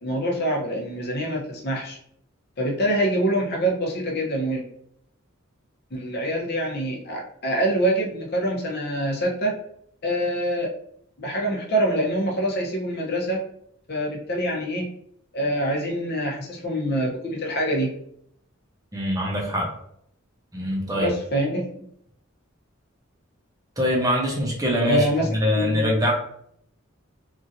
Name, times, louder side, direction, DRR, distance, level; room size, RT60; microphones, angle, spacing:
voice 1, 0.0-2.0 2.6-4.6 5.9-9.6 10.0-10.7 11.2-13.4 13.9-14.9 15.3-17.9 20.9-21.9 24.9-25.3 25.5-25.9, right 1 dB, 50° left, -1 dB, 0.8 m, -25 dB
voice 2, 18.9-19.7 20.5-21.1 23.8-25.1 25.3-26.1, equal, 15° right, -3 dB, 0.7 m, -23 dB
3.0 x 2.6 x 2.6 m, 0.69 s
head